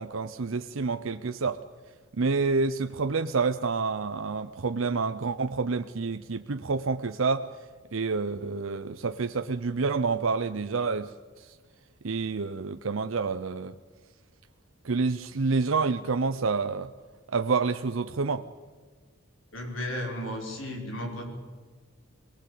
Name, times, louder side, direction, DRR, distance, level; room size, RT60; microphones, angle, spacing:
voice 1, 0.0-1.6 2.1-7.5 7.9-11.1 11.4-11.5 12.0-13.7 14.8-16.9 17.3-18.5, right 4 dB, 75° right, 9 dB, 0.7 m, -28 dB
voice 2, 19.5-21.3, left 1 dB, 70° left, 2 dB, 5.2 m, -34 dB
23.0 x 19.0 x 8.5 m, 1.5 s
head